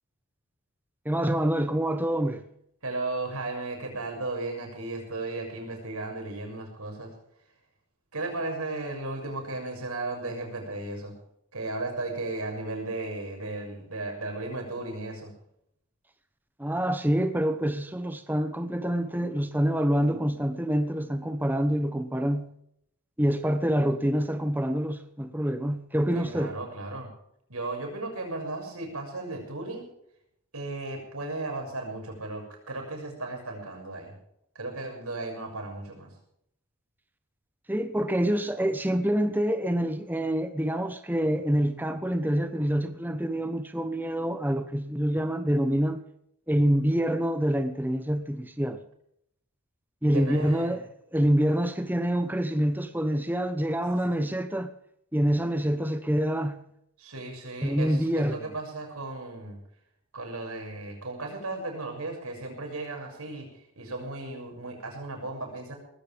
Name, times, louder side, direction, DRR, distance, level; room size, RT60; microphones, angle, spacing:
voice 1, 1.0-2.4 16.6-22.5 23.2-26.5 37.7-46.0 46.5-48.8 50.0-50.8 51.1-54.7 55.1-56.6 57.6-58.5, equal, 10° right, 1.0 m, -26 dB
voice 2, 2.8-7.1 8.1-11.1 11.5-15.3 26.1-27.1 27.5-29.9 30.5-34.1 34.5-36.1 50.1-50.8 57.0-59.6 60.1-63.5 63.8-65.8, right 2 dB, 80° right, 6.5 m, -35 dB
19.5 x 16.0 x 3.5 m
head